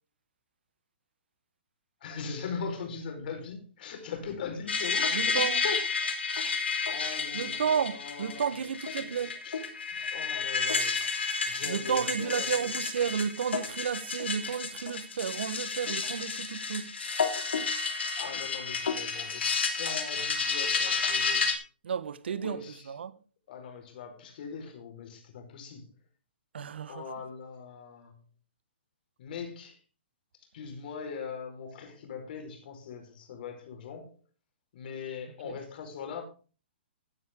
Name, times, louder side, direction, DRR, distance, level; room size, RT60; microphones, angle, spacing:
voice 1, 2.0-5.9 6.8-8.6 9.4-9.5 9.9-11.1 11.5-12.7 18.2-21.6 22.3-22.9 23.5-25.9 26.9-28.2 29.2-29.8 30.5-34.2 34.7-36.2, left 6 dB, 55° left, 4.7 m, -40 dB
sound 1, 4.7-21.6, left 5 dB, 80° left, 3.2 m, -31 dB
voice 2, 5.1-5.6 7.3-9.3 11.6-16.9 21.8-23.1 26.5-27.0 35.5-35.6, right 7 dB, 75° right, 1.2 m, -32 dB
15.5 x 10.0 x 3.7 m
hypercardioid pair, 140°, 6 cm